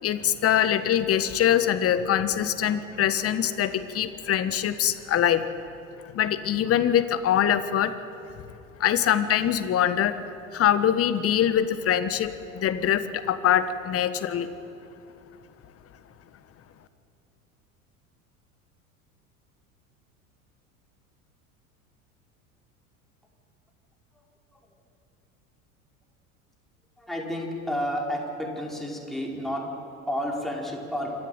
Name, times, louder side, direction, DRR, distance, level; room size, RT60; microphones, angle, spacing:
voice 1, 0.0-5.4 6.1-7.9 8.8-10.2 10.5-14.5, left 10 dB, 30° left, 12 dB, 1.4 m, -23 dB
voice 2, 27.0-29.6 30.1-31.1, equal, ahead, -2 dB, 5.0 m, -31 dB
25.5 x 14.5 x 9.2 m, 2.8 s
figure-of-eight pair, 75°, 43 cm